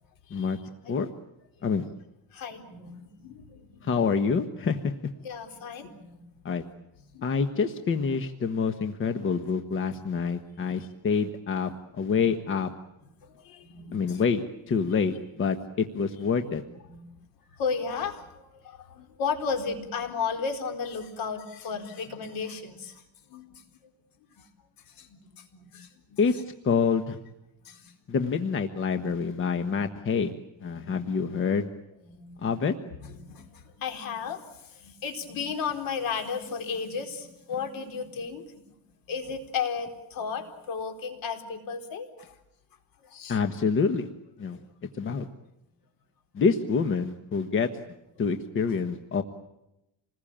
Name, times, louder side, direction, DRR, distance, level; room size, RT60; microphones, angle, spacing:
voice 1, 2.3-3.9 5.2-6.2 7.1-7.2 11.7-11.8 12.1-12.2 13.2-14.2 16.5-17.0 17.6-23.0 23.3-23.5 25.0-26.2 27.6-27.9 32.0-32.5 33.0-34.4 34.7-38.6 39.1-42.3 43.0-43.4, left 5 dB, 70° left, 6 dB, 4.2 m, -34 dB
voice 2, 3.8-4.9 6.4-6.6 7.2-11.7 12.0-12.7 13.9-16.6 26.2-26.3 26.6-27.2 28.1-30.3 30.6-31.7 32.4-32.7 43.3-44.1 44.4-44.6 45.0-45.3 46.3-47.7 48.2-49.2, left 5 dB, 35° left, 8 dB, 1.3 m, -26 dB
27.5 x 20.5 x 8.8 m, 0.90 s
cardioid pair, 150°, 35 cm